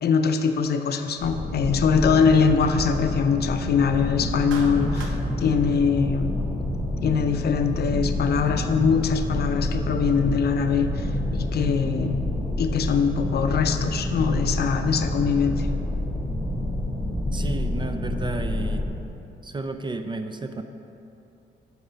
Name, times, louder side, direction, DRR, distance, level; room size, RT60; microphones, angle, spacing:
voice 1, 0.0-6.4 7.0-12.2 12.6-15.7, left 6 dB, 55° left, 7 dB, 0.5 m, -23 dB
sound 1, 1.2-18.9, left 1 dB, 5° right, 1.9 m, -28 dB
Clapping, 4.5-5.2, right 4 dB, 85° right, 0.8 m, -38 dB
voice 2, 17.3-18.8 19.4-20.6, right 3 dB, 25° right, 7 dB, 0.4 m, -32 dB
7.8 x 4.8 x 5.1 m, 2.8 s
cardioid pair, 90°, 20 cm